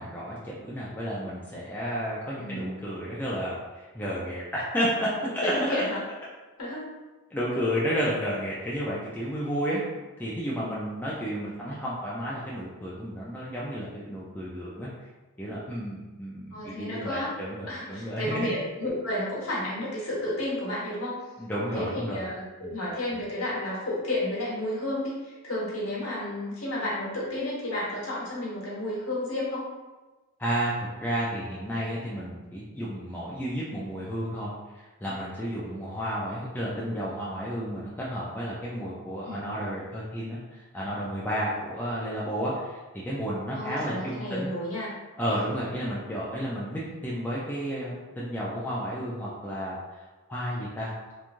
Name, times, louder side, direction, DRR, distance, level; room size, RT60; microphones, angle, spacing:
voice 1, 0.0-5.8 7.3-9.8 10.2-14.9 15.4-18.5 21.4-22.2 22.6-22.7 30.4-44.5 45.2-49.7 50.3-50.9, equal, 10° left, -7 dB, 0.3 m, -32 dB
voice 2, 2.3-2.7 5.4-6.0 6.6-6.9 16.5-17.3 17.7-21.2 21.7-29.7 39.3-39.5 43.5-44.9 45.3-45.4, left 1 dB, 65° left, -6 dB, 1.0 m, -32 dB
3.0 x 2.3 x 2.5 m, 1.2 s
head